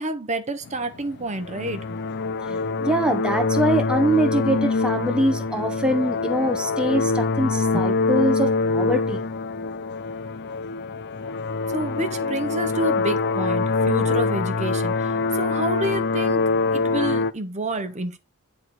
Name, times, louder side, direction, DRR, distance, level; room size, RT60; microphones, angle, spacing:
voice 1, 0.0-2.6 7.7-7.9 11.7-16.4 16.7-18.2, right 1 dB, 30° right, 1.0 m, -29 dB
sound 1, 0.7-17.3, left 3 dB, 50° left, 0.5 m, -24 dB
voice 2, 2.5-9.2, right 1 dB, 5° right, 0.9 m, -23 dB
9.4 x 4.2 x 4.5 m
head